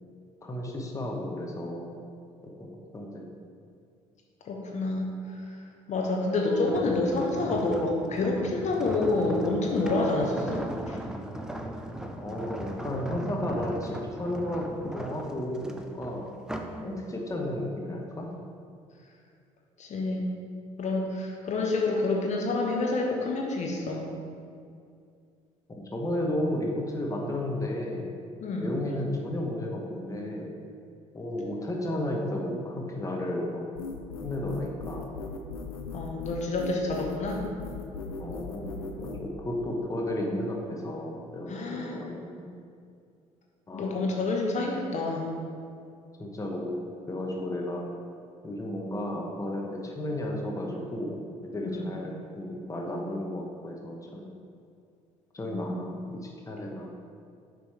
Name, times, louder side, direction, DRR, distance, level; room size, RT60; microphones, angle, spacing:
voice 1, 0.4-2.0 2.6-3.3 12.2-16.3 16.8-18.3 25.7-28.1 28.6-30.5 31.1-33.7 34.2-35.2 38.2-42.5 43.7-44.0 46.2-47.8 48.4-54.3 55.3-56.9, left 1 dB, 20° left, 0 dB, 1.0 m, -33 dB
voice 2, 4.5-5.1 5.9-11.0 19.8-20.2 20.8-24.2 28.4-28.8 35.9-37.5 41.5-42.0 43.7-45.3 51.7-51.9 55.5-55.8, left 2 dB, 45° left, 0 dB, 1.1 m, -28 dB
sound 1, 6.6-16.8 17.3-17.6, right 1 dB, 5° right, 0.6 m, -38 dB
sound 2, 33.8-39.2, left 4 dB, 85° left, 0.5 m, -38 dB
6.9 x 5.3 x 3.4 m, 2.3 s
hypercardioid pair, 55°, 17 cm